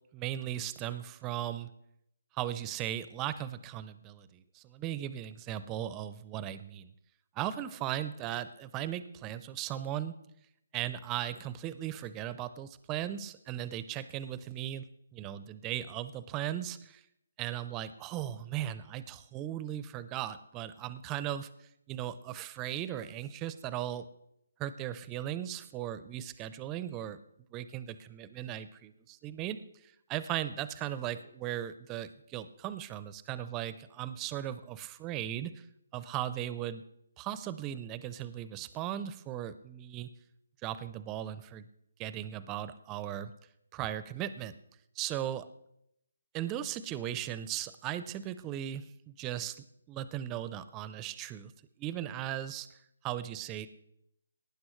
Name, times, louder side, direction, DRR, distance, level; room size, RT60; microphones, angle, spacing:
voice 1, 0.1-1.7 2.4-6.9 7.4-10.1 10.7-14.8 15.1-17.0 17.4-21.5 21.9-24.1 24.6-27.2 27.5-29.6 30.1-35.5 35.9-36.8 37.2-40.1 40.6-41.7 42.0-43.3 43.7-44.5 45.0-45.5 46.3-48.8 49.2-51.5 51.8-52.7 53.0-53.7, right 12 dB, 20° right, 14 dB, 0.5 m, -37 dB
18.5 x 9.4 x 3.2 m, 0.78 s
figure-of-eight pair, 150°, 0 cm